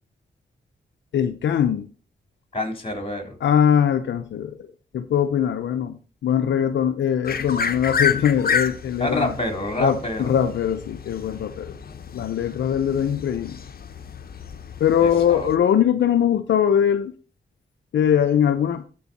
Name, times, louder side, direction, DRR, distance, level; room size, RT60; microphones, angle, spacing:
voice 1, 1.1-1.9 3.4-4.6 4.9-9.3 9.8-11.8 12.1-13.6 14.8-17.1 17.9-18.8, left 9 dB, 85° left, 8 dB, 0.6 m, -21 dB
voice 2, 2.5-3.4 9.0-10.3 15.0-15.5, left 1 dB, 30° left, 4 dB, 3.4 m, -27 dB
sound 1, 7.2-15.6, left 6 dB, 55° left, 0.9 m, -30 dB
13.5 x 4.7 x 4.1 m, 0.37 s
cardioid pair, 45°, 19 cm